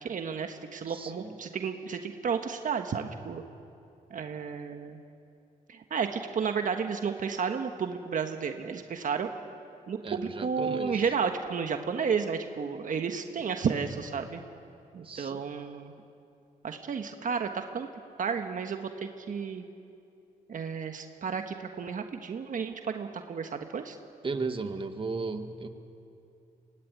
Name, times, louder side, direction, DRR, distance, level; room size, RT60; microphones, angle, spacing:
voice 1, 0.0-3.4 4.1-5.0 5.7-9.3 9.9-14.4 14.9-15.9 16.6-17.9 18.2-19.6 20.5-24.0, right 6 dB, 60° right, 6 dB, 1.4 m, -32 dB
voice 2, 0.9-1.4 10.0-11.0 15.0-15.4 24.2-25.7, right 4 dB, 35° right, 7 dB, 1.7 m, -35 dB
23.5 x 18.0 x 9.5 m, 2.6 s
cardioid pair, 75°, 15 cm